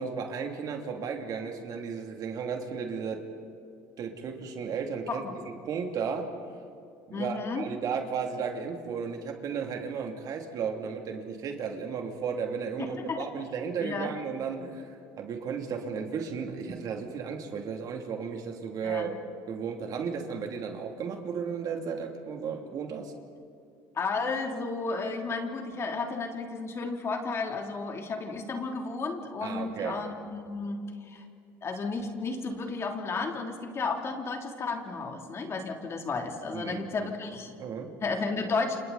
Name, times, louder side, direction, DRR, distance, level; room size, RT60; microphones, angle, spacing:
voice 1, 0.0-3.2 4.0-5.2 5.6-6.3 7.1-19.2 19.5-23.1 29.4-30.0 36.5-37.1 37.6-37.9, right 6 dB, 50° right, 3 dB, 3.0 m, -34 dB
voice 2, 7.1-7.6 12.8-13.3 13.8-14.1 18.8-19.1 23.9-31.2 31.6-37.5 38.0-38.8, left 4 dB, 35° left, 3 dB, 3.2 m, -33 dB
29.5 x 27.5 x 4.2 m, 2.4 s
supercardioid pair, 100°, 8 cm